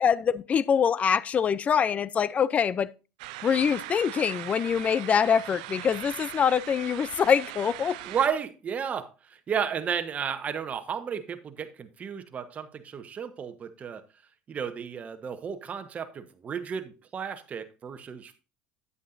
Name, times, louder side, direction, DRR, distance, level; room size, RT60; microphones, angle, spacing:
voice 1, 0.0-2.9 3.4-8.0, left 7 dB, 35° left, 0.5 m, -24 dB
sound 1, 3.2-8.3, right 16 dB, 90° right, 0.6 m, -40 dB
voice 2, 8.0-14.0 14.5-18.3, right 7 dB, 35° right, 1.1 m, -33 dB
9.6 x 8.3 x 2.6 m
supercardioid pair, 105°, 4 cm